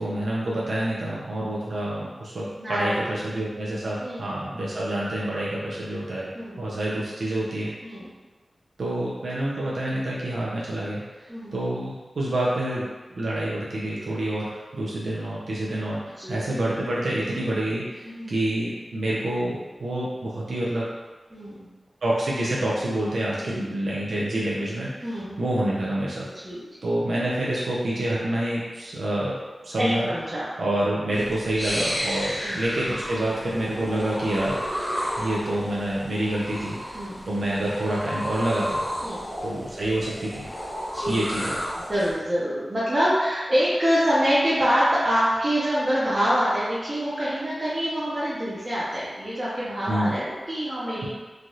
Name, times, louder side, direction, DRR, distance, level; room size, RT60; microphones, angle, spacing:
voice 1, 0.0-6.3 6.6-7.7 8.8-11.0 11.5-12.9 13.1-20.9 22.0-25.1 25.4-26.2 26.8-29.3 29.6-30.1 30.6-34.6 35.2-38.8 39.4-40.5 41.1-41.5 49.9-50.1, right 1 dB, 85° right, -6 dB, 0.5 m, -27 dB
voice 2, 2.6-3.1 4.0-4.8 6.3-6.8 7.8-8.1 11.3-11.5 16.2-16.4 18.0-18.3 21.3-21.7 23.4-23.7 25.0-25.4 26.4-26.7 29.8-30.5 32.4-32.6 36.9-37.2 39.0-39.3 40.9-41.2 41.7-51.1, equal, 30° right, -10 dB, 0.7 m, -25 dB
sound 1, 31.1-42.1, equal, 15° left, 1.0 m, -32 dB
3.2 x 2.4 x 2.7 m, 1.3 s
wide cardioid pair, 70°, 0 cm